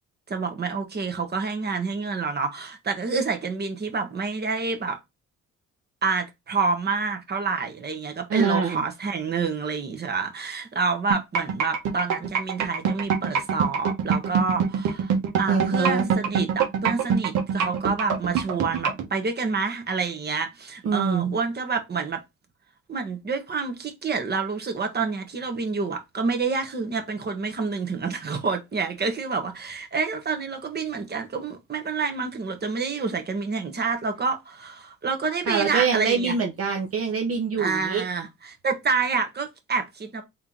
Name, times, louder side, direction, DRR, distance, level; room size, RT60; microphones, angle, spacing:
voice 1, 0.3-5.0 6.0-22.2 22.9-36.3 37.6-40.2, right 4 dB, 35° right, 1.3 m, -28 dB
voice 2, 8.3-8.8 15.5-16.1 20.8-21.4 35.5-38.0, right 5 dB, 50° right, 0.9 m, -24 dB
sound 1, 11.1-19.0, right 7 dB, 80° right, 1.2 m, -23 dB
3.6 x 3.0 x 3.8 m
cardioid pair, 90°, 30 cm